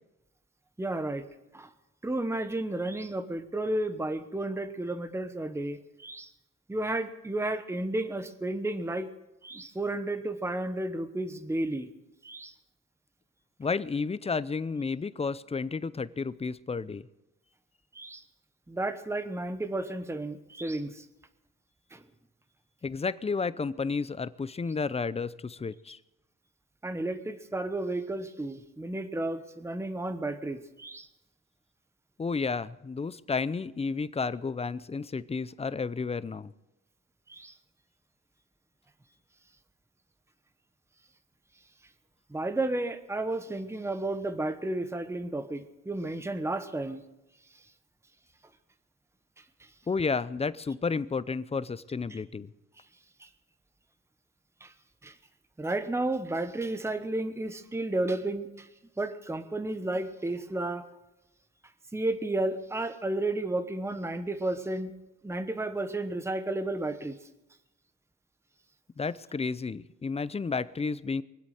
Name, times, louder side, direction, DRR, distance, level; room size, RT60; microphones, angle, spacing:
voice 1, 0.8-1.3 1.5-1.7 2.0-6.3 6.7-9.1 9.4-11.9 12.2-12.5 17.9-18.2 18.7-21.1 21.9-22.0 26.8-31.1 37.3-37.5 42.3-47.0 49.4-49.7 52.1-52.2 53.2-53.3 54.6-54.7 55.0-55.1 55.6-58.7 59.0-60.9 61.9-64.9 65.2-67.2, right 2 dB, 10° right, 10 dB, 1.1 m, -32 dB
voice 2, 13.6-17.0 22.8-26.0 32.2-36.5 49.9-52.5 69.0-71.2, left 4 dB, 20° left, 16 dB, 0.6 m, -31 dB
23.5 x 8.2 x 6.5 m, 0.96 s
cardioid pair, 90°, 30 cm